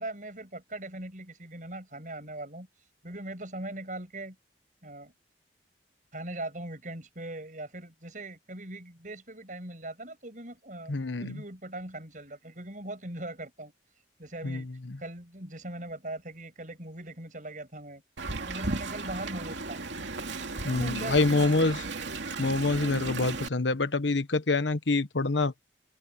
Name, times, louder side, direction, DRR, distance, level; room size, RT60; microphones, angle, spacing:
voice 1, 0.0-2.7 3.0-4.3 4.8-5.1 6.1-10.9 11.2-13.7 14.2-14.7 15.0-18.0 18.5-20.0 20.6-21.7, right 1 dB, 45° right, 6.6 m, -40 dB
voice 2, 10.9-11.4 14.4-15.0 20.6-21.8 22.4-25.5, left 3 dB, 80° left, 1.2 m, -26 dB
Wind, 18.2-23.5, right 3 dB, 80° right, 2.6 m, -35 dB
open air
head